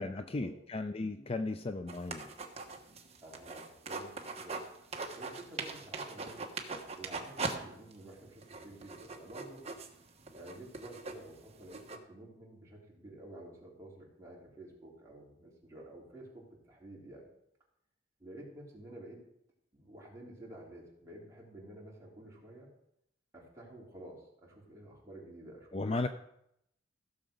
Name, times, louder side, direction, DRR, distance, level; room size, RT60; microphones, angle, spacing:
voice 1, 0.0-2.3 25.7-26.1, left 2 dB, 30° left, 9 dB, 0.4 m, -35 dB
sound 1, 1.9-4.7 4.9-7.6 7.9-8.0 8.4-12.0, right 3 dB, 35° right, 1.2 m, -41 dB
voice 2, 3.2-4.6 5.1-6.4 7.0-9.7 10.3-17.3 18.2-19.2 19.7-22.7 23.3-25.9, right 1 dB, 15° right, -5 dB, 3.5 m, -51 dB
16.0 x 6.9 x 5.1 m, 0.77 s
head